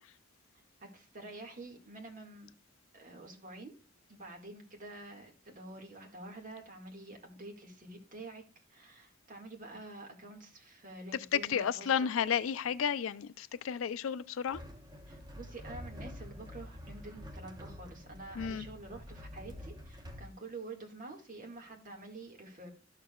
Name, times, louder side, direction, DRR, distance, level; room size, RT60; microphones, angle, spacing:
voice 1, 0.8-2.5 2.9-3.7 4.1-8.4 8.7-12.1 15.1-22.7, right 2 dB, 40° right, 1.8 m, -48 dB
voice 2, 11.3-14.6 18.4-18.6, left 8 dB, 75° left, 0.4 m, -32 dB
sound 1, 14.5-20.3, equal, 20° right, 1.0 m, -47 dB
12.5 x 6.7 x 2.3 m
head